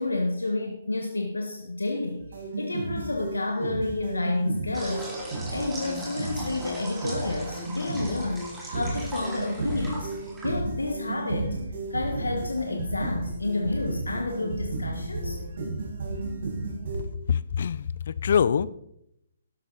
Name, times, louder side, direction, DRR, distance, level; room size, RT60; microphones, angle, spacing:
voice 1, 0.0-10.1 10.4-11.6 11.9-15.4, left 2 dB, 85° left, 2 dB, 1.5 m, -30 dB
sound 1, 2.2-17.0, right 2 dB, 55° right, 5.1 m, -33 dB
sound 2, 4.7-11.0, right 1 dB, 10° right, 4.2 m, -40 dB
voice 2, 17.3-18.7, left 7 dB, 55° left, 18 dB, 0.6 m, -24 dB
12.5 x 11.5 x 4.1 m, 0.79 s
figure-of-eight pair, 135°, 0 cm